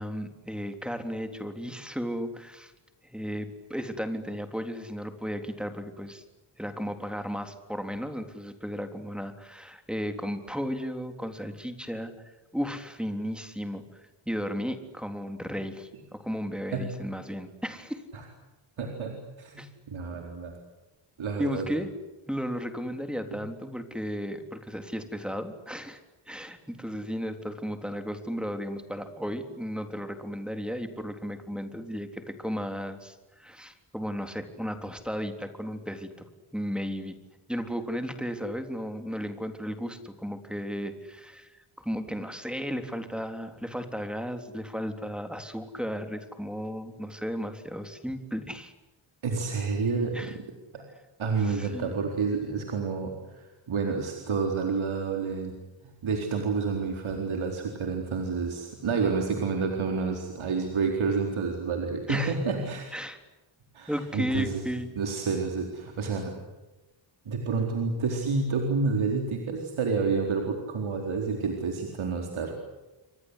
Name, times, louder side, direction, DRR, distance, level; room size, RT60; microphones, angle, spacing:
voice 1, 0.0-2.7 3.0-6.2 6.6-12.1 12.5-18.0 19.6-19.7 21.4-21.9 22.3-26.0 26.3-37.1 37.5-48.7 50.1-50.4 51.4-52.0 62.1-62.4 62.9-63.2 63.9-64.9, equal, ahead, 6 dB, 3.6 m, -34 dB
voice 2, 18.8-20.6 21.2-21.7 23.3-23.4 49.2-50.4 50.7-50.8 51.2-55.5 55.8-62.9 63.7-64.6 65.0-66.3 67.3-72.5, right 4 dB, 75° right, 2 dB, 4.2 m, -29 dB
30.0 x 24.5 x 8.2 m, 1.1 s
cardioid pair, 95°, 49 cm